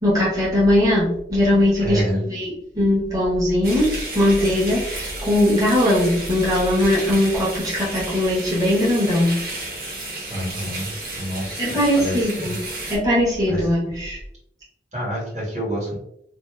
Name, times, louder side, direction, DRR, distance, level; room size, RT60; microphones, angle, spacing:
voice 1, 0.0-3.9 4.1-9.4 11.6-12.6 12.9-14.2, left 1 dB, 20° right, -7 dB, 0.9 m, -20 dB
voice 2, 1.8-2.3 10.3-12.6 13.5-13.8 14.9-15.9, equal, 40° right, -6 dB, 1.2 m, -28 dB
sound 1, 3.6-13.0, right 2 dB, 60° right, 1.0 m, -32 dB
2.6 x 2.3 x 2.3 m, 0.77 s
head